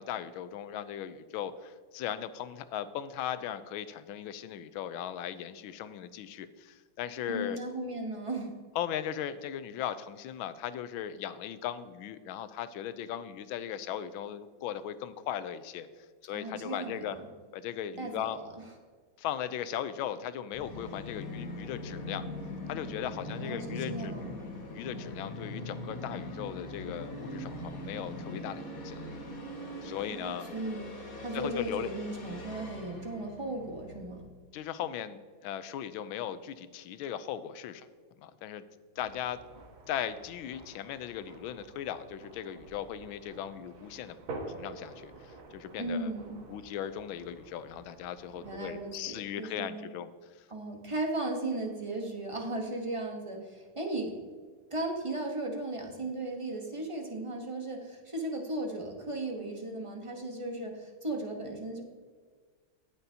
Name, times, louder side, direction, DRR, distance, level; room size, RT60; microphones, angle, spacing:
voice 1, 0.0-7.6 8.8-15.9 16.2-17.2 17.5-18.4 19.2-22.3 22.7-24.3 24.7-29.0 29.8-30.5 31.3-31.9 34.5-37.9 38.2-38.6 39.0-39.4 39.9-44.2 44.5-46.1 46.5-50.1, left 10 dB, 80° left, 13 dB, 1.4 m, -38 dB
voice 2, 7.3-8.5 16.3-17.2 18.0-18.4 23.3-24.4 30.1-30.9 31.2-34.2 45.8-46.4 48.4-49.9 50.5-54.1 54.7-61.8, right 2 dB, 25° right, 1 dB, 0.7 m, -36 dB
Musical instrument, 20.5-34.2, left 1 dB, 45° left, 1.8 m, -41 dB
sound 1, 38.9-49.0, right 2 dB, 75° right, 2.0 m, -48 dB
18.0 x 6.8 x 2.8 m, 1.5 s
omnidirectional pair, 2.2 m